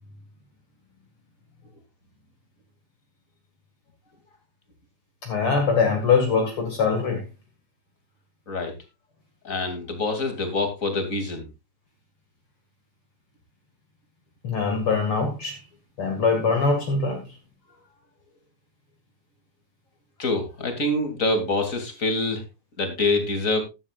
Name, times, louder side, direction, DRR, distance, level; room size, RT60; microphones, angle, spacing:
voice 1, 5.2-7.2 14.4-15.6 16.0-17.2, left 5 dB, 50° left, 2.7 m, -22 dB
voice 2, 9.4-11.5 20.2-22.4 22.8-23.6, left 2 dB, 25° left, 2.7 m, -25 dB
14.0 x 11.5 x 2.4 m
omnidirectional pair, 3.4 m